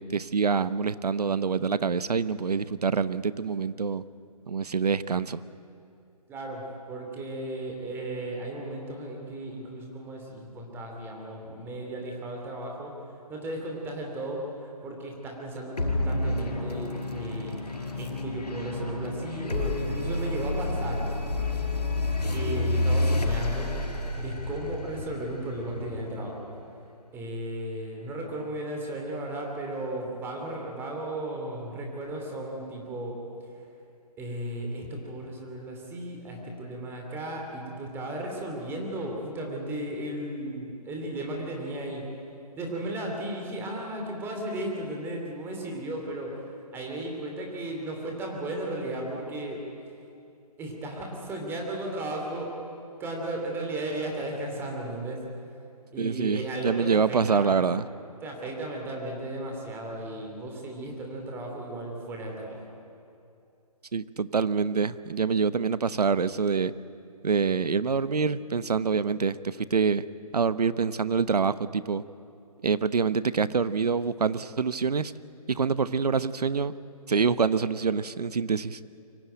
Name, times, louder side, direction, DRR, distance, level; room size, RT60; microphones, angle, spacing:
voice 1, 0.0-4.0 4.5-5.4 56.0-57.9 63.9-66.7 67.2-70.0 70.3-72.0 72.6-75.1 75.5-76.7 77.1-78.8, right 5 dB, 80° right, 15 dB, 0.9 m, -26 dB
voice 2, 6.3-12.9 13.3-17.6 18.0-21.1 22.3-23.7 24.2-26.5 27.1-33.2 34.2-42.1 42.6-46.4 46.7-49.6 50.6-52.5 53.0-55.2 55.9-57.6 58.2-62.6, right 1 dB, 10° right, 1 dB, 2.8 m, -35 dB
sound 1, 15.8-26.6, left 2 dB, 90° left, 5.1 m, -30 dB
24.0 x 15.5 x 9.2 m, 2.6 s
hypercardioid pair, 150°, 20 cm